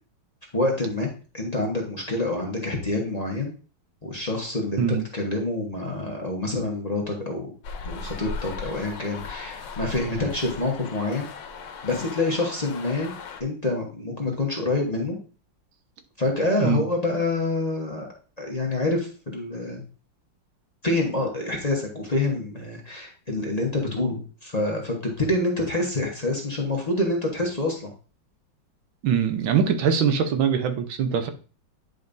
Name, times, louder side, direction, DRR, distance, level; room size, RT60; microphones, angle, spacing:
voice 1, 0.5-1.1 1.3-3.5 4.0-7.5 7.8-11.3 11.8-13.1 13.4-15.2 16.2-19.8 20.8-27.9, left 2 dB, 25° left, -1 dB, 1.1 m, -27 dB
sound 1, 7.6-13.4, left 5 dB, 70° left, 1.5 m, -37 dB
voice 2, 29.0-31.3, right 7 dB, 85° right, 8 dB, 1.6 m, -22 dB
9.4 x 5.2 x 2.6 m, 0.37 s
omnidirectional pair, 2.1 m